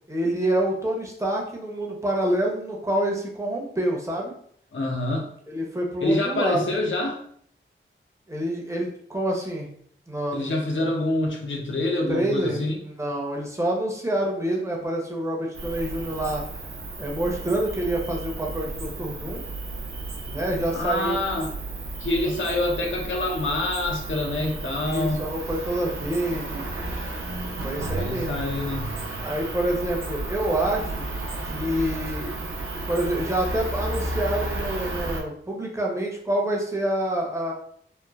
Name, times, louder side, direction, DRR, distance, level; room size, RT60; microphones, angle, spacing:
voice 1, 0.1-4.3 5.5-6.7 8.3-9.7 10.1-10.6 12.1-16.4 17.0-19.4 20.2-21.2 24.8-26.6 27.6-28.4 29.2-31.1 31.4-32.3 32.9-37.5, right 1 dB, 15° right, -1 dB, 0.7 m, -27 dB
voice 2, 4.7-5.3 6.0-7.2 10.3-12.7 20.7-21.5 22.0-25.3 27.9-28.9, left 2 dB, 65° left, 0 dB, 0.7 m, -26 dB
Cricket, 15.5-35.2, right 2 dB, 80° right, 0.5 m, -33 dB
3.0 x 2.0 x 2.3 m, 0.64 s
cardioid pair, 60°, 21 cm